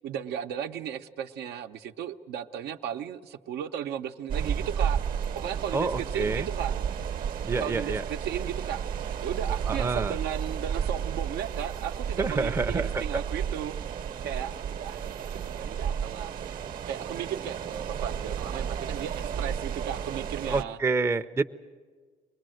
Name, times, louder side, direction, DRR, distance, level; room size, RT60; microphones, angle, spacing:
voice 1, 0.0-5.0 5.3-6.8 7.6-13.8 14.2-16.5 16.9-20.8, right 9 dB, 80° right, 6 dB, 0.8 m, -35 dB
sound 1, 4.3-20.6, right 8 dB, 55° right, 1.0 m, -32 dB
voice 2, 5.7-6.5 7.4-8.0 9.7-10.2 12.2-13.2 20.5-21.4, right 3 dB, 15° right, 7 dB, 0.6 m, -28 dB
23.5 x 19.5 x 7.8 m, 1.5 s
cardioid pair, 110°, 17 cm